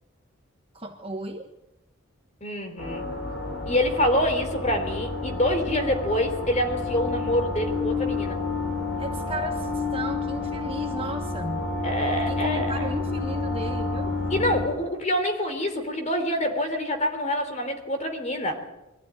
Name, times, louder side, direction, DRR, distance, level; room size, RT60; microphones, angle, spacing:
voice 1, 0.7-1.5 9.0-11.6 12.3-14.1, right 2 dB, 25° right, 3 dB, 1.4 m, -35 dB
voice 2, 2.4-3.0 3.7-8.4 11.8-13.0 14.3-18.6, left 1 dB, 35° left, 6 dB, 3.5 m, -26 dB
sound 1, 2.8-14.7, left 3 dB, 65° left, 6.1 m, -29 dB
23.0 x 15.0 x 9.6 m, 0.96 s
head